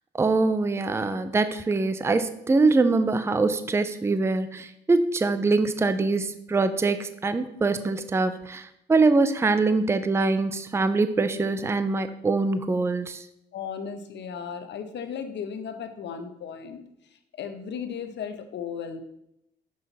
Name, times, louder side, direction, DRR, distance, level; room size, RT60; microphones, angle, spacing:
voice 1, 0.1-13.2, right 3 dB, 15° right, 11 dB, 0.5 m, -23 dB
voice 2, 13.5-16.8 17.4-19.0, left 7 dB, 65° left, 8 dB, 0.9 m, -35 dB
6.5 x 5.7 x 4.0 m, 0.80 s
cardioid pair, 90°, 20 cm